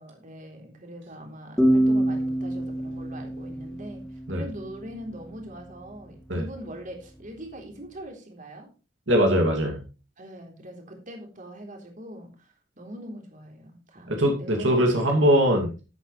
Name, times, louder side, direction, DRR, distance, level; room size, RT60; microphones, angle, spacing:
voice 1, 0.0-8.7 10.2-15.3, equal, 45° right, 2 dB, 3.7 m, -42 dB
sound 1, 1.6-5.0, right 1 dB, 5° left, 3.2 m, -25 dB
voice 2, 9.1-9.8 14.1-15.8, equal, 85° right, 2 dB, 2.6 m, -21 dB
12.5 x 9.2 x 3.3 m, 0.33 s
head